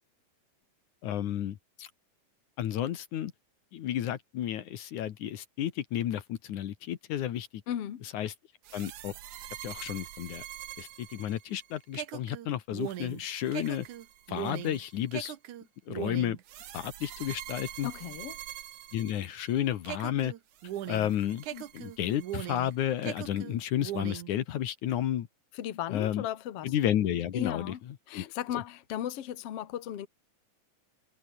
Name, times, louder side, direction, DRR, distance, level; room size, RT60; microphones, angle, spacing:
voice 1, 1.0-1.9 2.6-3.3 3.7-7.5 8.0-8.3 8.7-9.1 9.6-10.4 10.8-13.9 14.3-15.3 15.9-16.4 16.7-17.9 18.9-20.3 20.9-25.3 25.9-26.2 26.6-27.7 28.1-28.6, left 11 dB, 70° left, 2.8 m, -32 dB
voice 2, 7.7-8.0 17.8-18.4 25.5-26.7 27.3-27.8 28.1-30.1, left 11 dB, 55° left, 2.3 m, -36 dB
sound 1, 8.6-19.5 19.9-22.7 23.0-24.3, right 12 dB, 75° right, 2.8 m, -41 dB
omnidirectional pair, 3.6 m